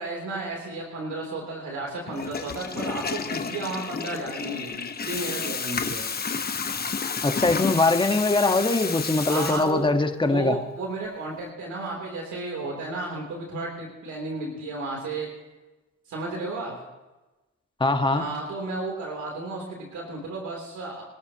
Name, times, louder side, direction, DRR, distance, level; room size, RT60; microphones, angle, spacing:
voice 1, 0.0-6.0 9.3-9.9 10.2-15.3 16.1-16.7 18.1-21.0, right 2 dB, 70° right, 0 dB, 3.3 m, -33 dB
Water tap faucet / Toilet flush, 2.1-10.1, left 5 dB, 30° left, 1.1 m, -31 dB
voice 2, 7.2-10.6 17.8-18.2, left 2 dB, 15° left, 6 dB, 1.4 m, -22 dB
26.5 x 13.0 x 2.9 m, 1.1 s
cardioid pair, 90°, 30 cm